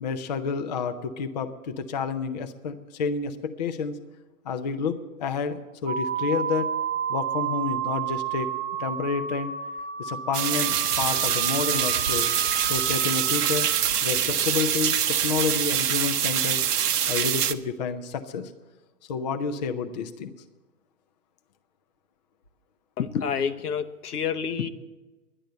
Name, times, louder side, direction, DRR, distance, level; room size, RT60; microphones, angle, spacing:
voice 1, 0.0-4.0 4.4-6.7 7.1-8.5 8.8-9.5 10.0-12.3 12.7-13.7 14.0-16.6 17.1-18.5 19.1-20.3, left 5 dB, 30° left, 8 dB, 0.5 m, -29 dB
sound 1, 5.9-13.8, right 8 dB, 45° right, 0.7 m, -31 dB
sound 2, 10.3-17.5, right 9 dB, 75° right, 0.8 m, -25 dB
voice 2, 23.0-24.7, left 7 dB, 75° left, 10 dB, 1.0 m, -28 dB
11.0 x 10.5 x 7.8 m, 1.2 s
hypercardioid pair, 140°, 46 cm